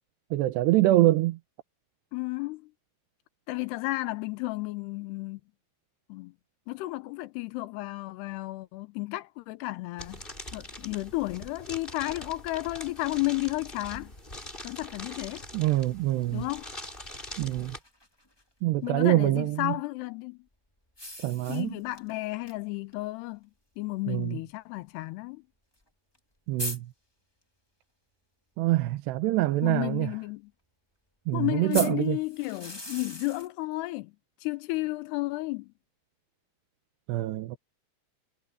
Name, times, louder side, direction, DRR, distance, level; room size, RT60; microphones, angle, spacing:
voice 1, 0.3-1.4 15.5-16.4 17.4-17.8 18.6-19.8 21.2-21.8 24.1-24.4 26.5-26.9 28.6-30.1 31.3-32.2 37.1-37.6, right 16 dB, 85° right, 3.1 m, -25 dB
voice 2, 2.1-2.7 3.5-5.4 6.1-6.3 6.7-10.2 10.5-14.1 14.6-15.4 16.3-16.7 18.8-20.4 21.5-23.5 23.8-25.4 29.6-30.5 31.3-34.1 34.4-35.7, left 20 dB, 80° left, 2.8 m, -32 dB
sound 1, 10.0-17.8, left 1 dB, 10° left, 6.7 m, -43 dB
Soda Water Bottle, 16.3-18.4 20.9-22.1 22.5-22.6 22.9-23.0 23.9-24.0 25.8-25.9 26.1-26.2 26.6-26.8 31.7-33.5, left 1 dB, 40° left, 0.3 m, -39 dB
omnidirectional pair, 4.7 m